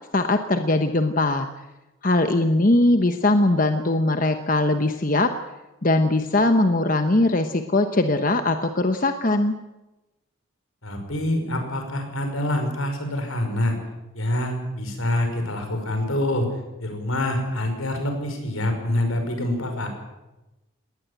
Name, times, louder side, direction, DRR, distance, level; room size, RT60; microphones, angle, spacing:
voice 1, 0.1-1.5 2.0-5.3 5.8-9.5, left 2 dB, 40° left, 7 dB, 1.0 m, -20 dB
voice 2, 10.8-13.8 14.1-16.5 16.8-19.9, left 1 dB, 85° left, 5 dB, 5.5 m, -26 dB
20.0 x 18.5 x 8.3 m, 1.0 s
head